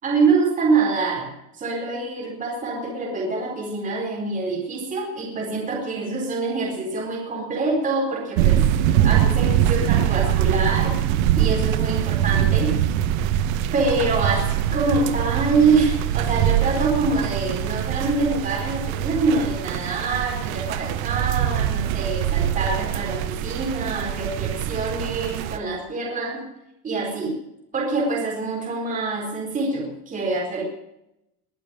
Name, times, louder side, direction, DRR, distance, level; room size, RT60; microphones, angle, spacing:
voice 1, 0.0-12.9 13.7-26.5 26.8-27.4 27.7-30.6, right 3 dB, 15° right, -1 dB, 4.4 m, -25 dB
sound 1, 8.4-25.6, right 11 dB, 55° right, 1.4 m, -23 dB
21.5 x 7.4 x 8.8 m, 0.85 s
supercardioid pair, 170°, 47 cm